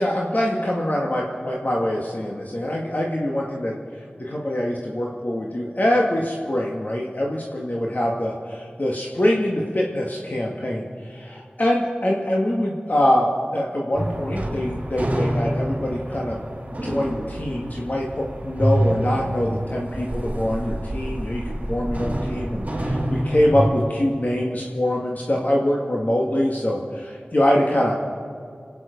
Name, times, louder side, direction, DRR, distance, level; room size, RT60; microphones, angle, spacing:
voice 1, 0.0-28.0, left 1 dB, 50° left, -2 dB, 1.8 m, -24 dB
sound 1, 13.9-23.7, right 1 dB, 40° right, 4.1 m, -27 dB
27.0 x 9.5 x 5.2 m, 2.3 s
wide cardioid pair, 50°, 4 cm